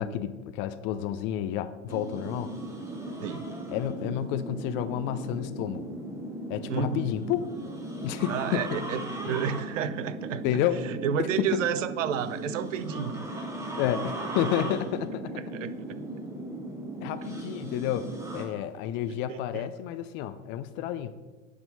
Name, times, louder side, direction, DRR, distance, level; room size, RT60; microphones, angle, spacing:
voice 1, 0.0-2.5 3.7-5.9 6.5-7.5 8.0-8.8 10.4-10.8 11.2-11.6 13.8-15.3 17.0-21.2, left 11 dB, 30° left, 11 dB, 0.4 m, -30 dB
sound 1, 1.9-18.5, right 1 dB, 5° right, 1.5 m, -37 dB
voice 2, 3.2-3.5 6.7-7.1 8.3-10.4 10.8-13.3 15.5-15.7 19.3-19.7, right 8 dB, 65° right, 14 dB, 0.7 m, -31 dB
9.6 x 3.7 x 7.1 m, 1.2 s
figure-of-eight pair, 90°, 41 cm